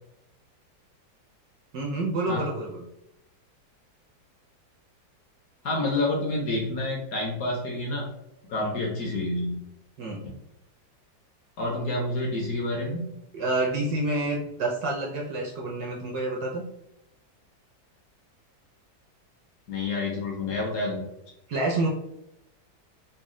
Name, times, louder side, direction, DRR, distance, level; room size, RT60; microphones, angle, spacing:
voice 1, 1.7-2.8 8.6-8.7 10.0-10.3 13.3-16.6 21.5-21.9, right 2 dB, 70° right, -1 dB, 1.0 m, -28 dB
voice 2, 5.6-8.0 8.5-9.6 10.2-10.3 11.6-13.1 19.7-21.0, left 2 dB, 60° left, -1 dB, 1.0 m, -28 dB
4.1 x 2.0 x 3.6 m, 0.84 s
omnidirectional pair, 2.1 m